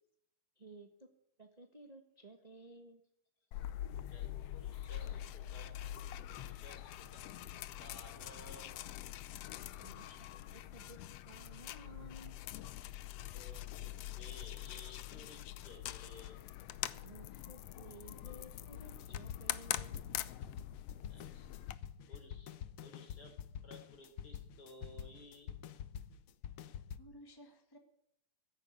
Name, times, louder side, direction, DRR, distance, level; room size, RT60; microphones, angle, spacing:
voice 1, 0.6-1.1 1.4-3.0 9.8-11.0 11.2-12.4 17.0-20.0, right 2 dB, 40° right, 5 dB, 0.5 m, -55 dB
sound 1, 3.5-21.7, left 13 dB, 75° left, 1.5 m, -44 dB
voice 2, 4.1-5.7 6.3-8.8 13.3-16.4 21.1-21.7 22.0-23.4 23.6-25.5, left 1 dB, 30° left, 3 dB, 4.2 m, -57 dB
sound 2, 18.9-27.0, left 9 dB, 90° left, 1.2 m, -47 dB
voice 3, 26.6-27.8, equal, 15° left, 5 dB, 0.8 m, -57 dB
15.5 x 9.2 x 8.6 m, 0.75 s
omnidirectional pair, 3.4 m